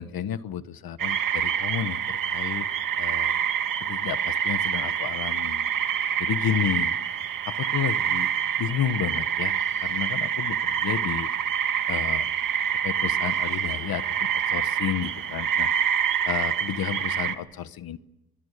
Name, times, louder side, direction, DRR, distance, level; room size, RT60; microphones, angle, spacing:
voice 1, 0.0-2.7 3.0-3.4 3.8-5.7 6.2-7.0 7.5-8.3 8.6-11.3 11.9-12.2 12.8-15.7 16.2-18.0, left 10 dB, 70° left, 13 dB, 1.3 m, -31 dB
sound 1, 1.0-17.4, right 8 dB, 60° right, 2.1 m, -26 dB
30.0 x 23.0 x 6.7 m, 0.96 s
wide cardioid pair, 165°, 37 cm